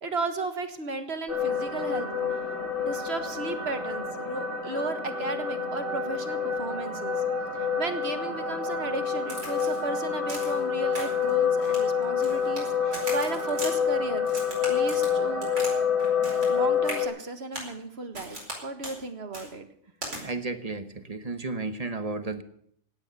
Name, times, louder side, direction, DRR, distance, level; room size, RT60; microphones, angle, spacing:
voice 1, 0.0-2.1 2.8-7.2 7.5-14.3 14.7-15.5 16.5-19.7, right 3 dB, 60° right, 7 dB, 1.8 m, -35 dB
sound 1, 1.3-17.1, left 6 dB, 30° left, 3.4 m, -28 dB
Crack, 9.3-9.8 10.3-10.6 10.9-11.3 11.6-12.6 12.9-13.7 14.3-15.7 16.0-16.6 16.8-17.0 17.5-17.7 18.1-18.6 18.8-19.0 19.3-19.5 20.0-20.2, right 1 dB, 90° right, 5.1 m, -38 dB
voice 2, 20.2-22.4, right 3 dB, 35° right, 10 dB, 1.1 m, -33 dB
17.0 x 10.0 x 6.8 m, 0.67 s
omnidirectional pair, 1.2 m